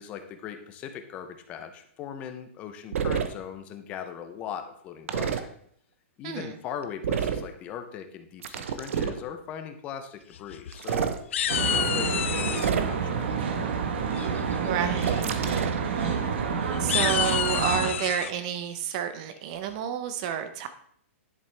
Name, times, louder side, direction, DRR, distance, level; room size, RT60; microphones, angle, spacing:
voice 1, 0.0-5.5 6.2-11.2 11.7-13.8, left 8 dB, 15° left, 8 dB, 0.6 m, -39 dB
sound 1, 2.9-3.3 5.1-5.4 7.0-7.5 8.4-9.2 10.7-11.2 12.5-13.1 15.0-15.8, right 7 dB, 70° right, 0.9 m, -28 dB
sound 2, 10.3-11.0 11.3-12.7 14.1-14.5 15.0-15.2 15.5-15.6 16.0-16.1 16.7-18.3, left 10 dB, 65° left, 0.4 m, -29 dB
Traffic noise roadway noise, 11.5-17.9, right 6 dB, 50° right, 1.1 m, -28 dB
voice 2, 14.6-15.3 16.8-20.7, right 8 dB, 30° right, 10 dB, 0.8 m, -30 dB
10.5 x 7.1 x 3.3 m, 0.65 s
hypercardioid pair, 175°, 7 cm